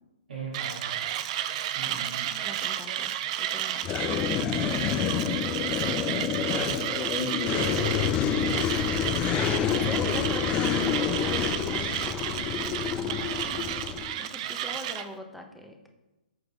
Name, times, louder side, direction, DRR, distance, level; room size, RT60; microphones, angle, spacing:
voice 1, 0.3-1.0 1.7-2.4 6.4-8.1 13.2-13.8, right 2 dB, 65° right, -4 dB, 2.6 m, -39 dB
Mechanisms, 0.5-15.1, right 11 dB, 40° right, 0.6 m, -32 dB
voice 2, 1.9-5.3 9.2-12.4 12.9-15.9, equal, ahead, 2 dB, 1.0 m, -42 dB
sound 1, 3.8-14.2, left 8 dB, 20° left, 0.5 m, -28 dB
13.5 x 4.9 x 3.7 m, 1.0 s
figure-of-eight pair, 130°, 5 cm